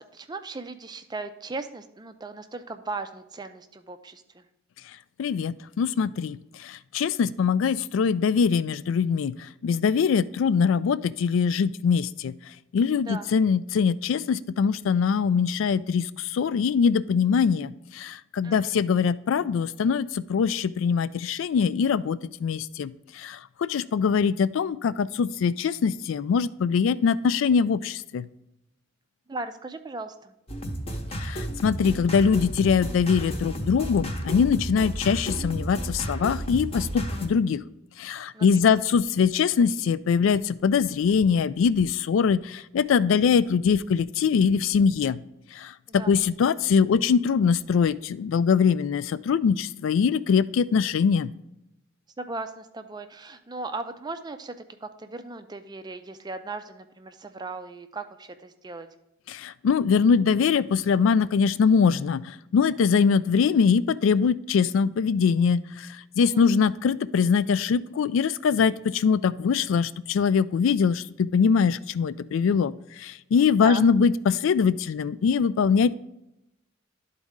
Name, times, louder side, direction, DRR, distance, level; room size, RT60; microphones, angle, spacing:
voice 1, 0.0-4.4 13.0-13.3 18.4-18.8 29.3-30.3 38.3-38.9 45.9-46.2 52.2-58.9 66.2-66.5 73.6-73.8, right 3 dB, 20° right, 9 dB, 0.4 m, -37 dB
voice 2, 5.2-6.4 6.6-9.3 9.6-12.3 12.7-22.9 23.2-28.2 31.2-37.6 38.0-45.2 45.6-51.3 59.3-62.2 62.5-65.6 66.2-72.7 73.0-75.9, left 6 dB, 70° left, 17 dB, 0.3 m, -23 dB
sound 1, 30.5-37.3, equal, 30° left, 0.9 m, -32 dB
12.0 x 4.1 x 3.6 m, 0.88 s
head